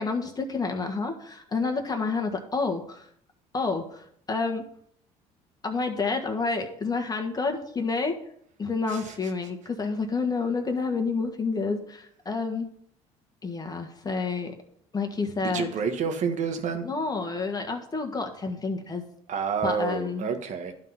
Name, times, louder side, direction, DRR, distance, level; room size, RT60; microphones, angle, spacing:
voice 1, 0.0-3.0 3.5-4.6 5.6-8.2 8.6-12.7 13.4-14.5 14.9-15.7 16.8-19.0 19.6-20.3, left 4 dB, 25° left, 4 dB, 1.5 m, -29 dB
voice 2, 15.4-16.9 19.3-20.7, right 6 dB, 55° right, 7 dB, 1.3 m, -29 dB
11.5 x 3.8 x 5.6 m, 0.67 s
supercardioid pair, 80°, 15 cm